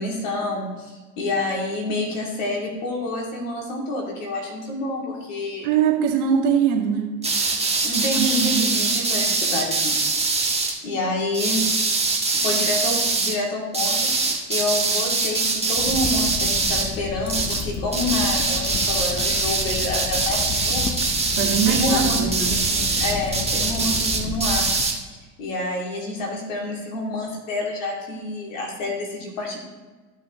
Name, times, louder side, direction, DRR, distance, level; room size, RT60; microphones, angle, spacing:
voice 1, 0.0-5.7 7.8-10.2 10.8-11.6 12.3-21.4 21.7-24.7 25.4-29.6, left 2 dB, 80° left, -1 dB, 2.6 m, -28 dB
voice 2, 5.6-7.2 8.1-8.8 21.4-22.6, right 7 dB, 70° right, 1 dB, 1.8 m, -22 dB
sound 1, 7.2-10.7 11.3-13.4 13.7-16.9 17.3-17.7 17.9-25.0, right 3 dB, 15° right, 1.6 m, -23 dB
Crackle, 15.8-24.8, left 5 dB, 35° left, 1.0 m, -32 dB
14.0 x 6.0 x 3.1 m, 1.3 s
hypercardioid pair, 70°, 39 cm